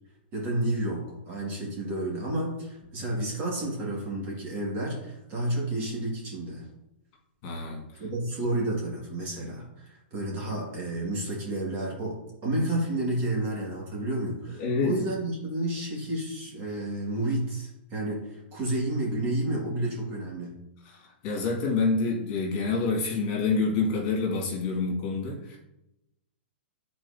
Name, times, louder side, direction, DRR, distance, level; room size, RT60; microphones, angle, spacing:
voice 1, 0.3-6.6 8.0-12.2 12.4-20.6, right 1 dB, 30° right, -3 dB, 2.1 m, -31 dB
voice 2, 7.4-7.8 14.6-14.9 21.2-25.6, left 4 dB, 40° left, -2 dB, 2.1 m, -27 dB
9.5 x 4.3 x 2.8 m, 0.87 s
hypercardioid pair, 150°, 6 cm